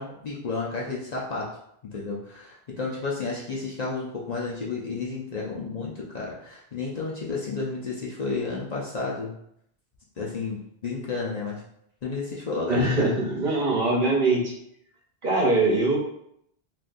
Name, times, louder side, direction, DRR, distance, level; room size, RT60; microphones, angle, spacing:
voice 1, 0.0-1.5 1.9-9.4 10.2-11.6 12.0-13.1, left 4 dB, 50° left, -4 dB, 0.6 m, -31 dB
voice 2, 12.7-14.5 15.2-16.0, right 2 dB, 55° right, -2 dB, 0.9 m, -22 dB
3.7 x 2.6 x 2.5 m, 0.73 s
omnidirectional pair, 1.0 m